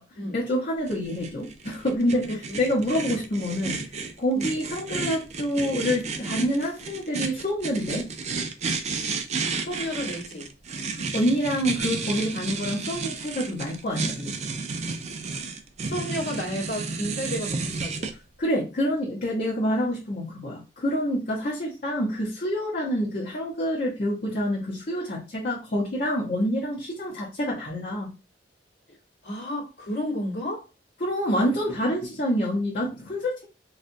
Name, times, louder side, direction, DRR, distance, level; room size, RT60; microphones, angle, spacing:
voice 1, 0.3-2.2 2.6-3.8 4.2-8.1 11.0-14.3 18.4-28.1 31.0-33.5, equal, 50° left, 0.9 m, -27 dB
sound 1, 0.9-18.1, right 4 dB, 40° right, 0.4 m, -32 dB
voice 2, 2.1-2.7 4.3-4.6 9.6-10.5 15.8-18.1 29.2-30.7, equal, 80° left, 1.4 m, -32 dB
4.1 x 2.4 x 2.6 m
head